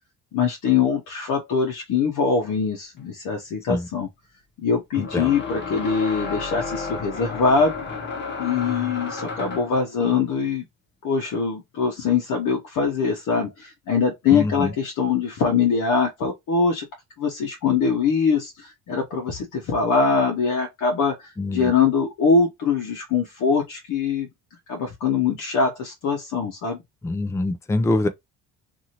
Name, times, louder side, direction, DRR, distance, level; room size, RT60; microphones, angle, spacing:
voice 1, 0.3-4.1 4.6-7.8 8.4-10.7 11.0-16.9 17.2-24.3 24.7-26.8, left 5 dB, 60° left, 0.8 m, -23 dB
sound 1, 3.0-3.1 4.9-9.8, left 4 dB, 30° left, 1.0 m, -32 dB
voice 2, 5.0-5.3 14.3-14.7 21.4-21.7 27.0-28.1, left 2 dB, 10° left, 0.4 m, -24 dB
2.8 x 2.6 x 2.8 m
cardioid pair, 90°, 35 cm